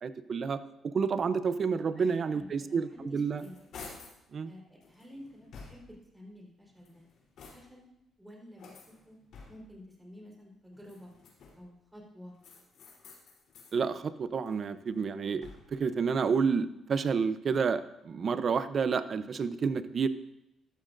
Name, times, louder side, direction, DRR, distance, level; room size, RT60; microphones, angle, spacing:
voice 1, 0.0-3.4 4.3-4.5 13.7-20.1, right 5 dB, 50° right, 12 dB, 0.7 m, -30 dB
voice 2, 1.8-3.6 4.4-7.0 7.5-7.8 8.2-9.2 9.5-11.1 11.5-12.3, left 1 dB, 10° right, -1 dB, 4.3 m, -50 dB
sound 1, 2.9-4.2 4.8-6.1 6.7-7.9 8.6-9.8 10.7-11.8 12.4-13.8 14.2-15.9, left 4 dB, 70° left, 3.7 m, -52 dB
14.0 x 12.5 x 2.6 m, 0.87 s
cardioid pair, 90°, 0 cm